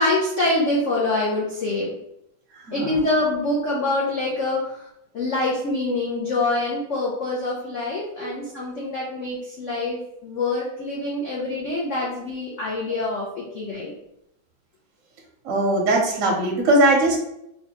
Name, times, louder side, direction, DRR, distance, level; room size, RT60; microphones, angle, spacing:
voice 1, 0.0-1.9 2.7-4.9 5.1-13.9, left 2 dB, 75° left, -4 dB, 0.7 m, -25 dB
voice 2, 2.5-3.0 8.2-8.3 15.4-17.2, right 1 dB, 60° right, -1 dB, 0.8 m, -20 dB
4.1 x 2.3 x 2.8 m, 0.80 s
omnidirectional pair, 2.1 m